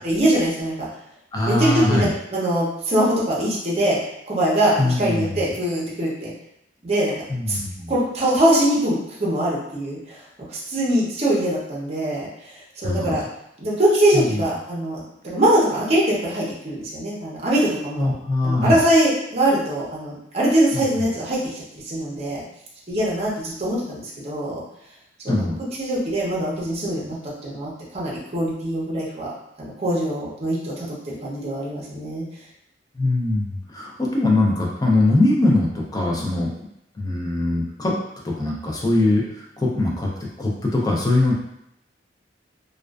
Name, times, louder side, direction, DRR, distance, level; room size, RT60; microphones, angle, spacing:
voice 1, 0.0-0.9 1.4-4.0 4.3-6.3 6.8-7.1 7.5-7.6 7.9-10.0 10.5-12.3 12.8-13.2 13.6-18.1 18.4-21.4 21.7-22.4 22.9-24.6 25.2-25.4 25.8-29.3 29.6-32.2, right 1 dB, 35° right, -5 dB, 0.6 m, -22 dB
voice 2, 1.3-2.1 4.8-5.4 7.3-7.9 12.8-13.2 14.1-14.4 18.0-18.8 20.7-20.8 25.3-25.6 32.9-36.5 37.0-37.9 38.2-40.1 40.4-41.3, left 2 dB, 20° left, -2 dB, 0.4 m, -21 dB
2.4 x 2.3 x 2.2 m, 0.78 s
head